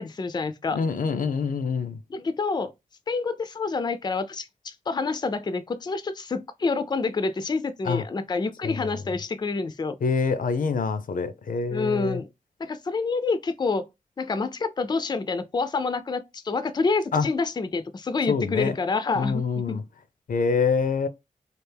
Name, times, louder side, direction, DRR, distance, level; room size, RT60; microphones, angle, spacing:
voice 1, 0.0-0.8 2.1-2.7 3.1-10.0 11.7-12.3 12.6-13.9 14.2-19.8, left 4 dB, 30° left, 0.4 m, -28 dB
voice 2, 0.7-2.0 7.9-8.0 8.6-8.9 10.0-12.2 17.1-17.3 18.3-18.8 19.2-19.8 20.3-21.1, left 5 dB, 85° left, 0.5 m, -25 dB
3.3 x 2.4 x 3.3 m
wide cardioid pair, 115°, 14 cm